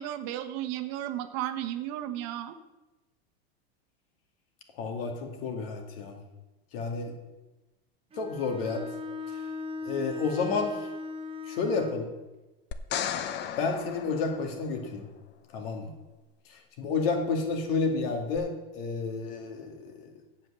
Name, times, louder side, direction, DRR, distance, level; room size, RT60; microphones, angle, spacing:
voice 1, 0.0-2.6, right 12 dB, 50° right, 9 dB, 1.0 m, -34 dB
voice 2, 4.8-6.2 6.7-7.1 8.2-8.8 9.9-10.9 11.5-12.1 13.6-15.1 15.5-15.9 16.8-20.1, left 4 dB, 65° left, 3 dB, 2.3 m, -30 dB
Bowed string instrument, 8.1-12.1, left 2 dB, 20° right, 1.1 m, -38 dB
sound 1, 12.7-15.0 18.4-18.5, left 9 dB, 35° left, 0.7 m, -35 dB
7.9 x 7.5 x 7.2 m, 1.1 s
supercardioid pair, 125°, 31 cm